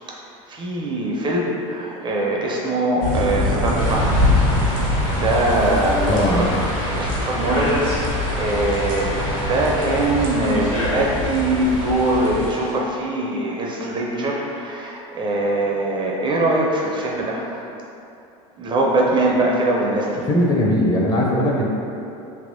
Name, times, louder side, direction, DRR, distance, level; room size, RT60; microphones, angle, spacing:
voice 1, 0.5-4.1 5.1-6.5 6.9-17.7 18.6-20.3, right 2 dB, 30° right, -2 dB, 0.4 m, -22 dB
sound 1, 3.0-12.5, left 1 dB, 85° right, 0.7 m, -24 dB
sound 2, 3.8-12.7, left 1 dB, 55° left, 1.5 m, -29 dB
voice 2, 6.1-6.5 20.3-21.7, left 1 dB, 25° left, -3 dB, 0.6 m, -19 dB
3.3 x 2.9 x 2.6 m, 2.7 s
supercardioid pair, 110°, 17 cm